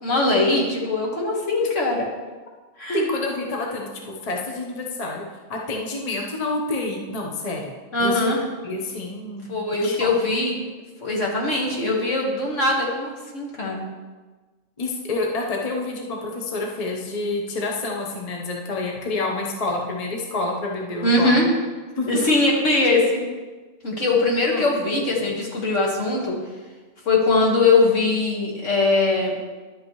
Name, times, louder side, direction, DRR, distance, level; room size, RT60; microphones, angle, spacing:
voice 1, 0.0-2.1 2.8-3.1 7.9-8.4 9.5-10.6 11.0-13.9 21.0-21.5 22.0-23.2 23.8-26.4 27.1-29.4, left 2 dB, 65° left, -2 dB, 2.0 m, -21 dB
voice 2, 2.9-5.2 5.5-7.7 8.0-8.3 8.6-10.1 14.8-21.4 22.0-22.1 24.5-24.6, left 2 dB, 30° left, 0 dB, 1.0 m, -28 dB
11.5 x 8.2 x 3.1 m, 1.3 s
omnidirectional pair, 1.4 m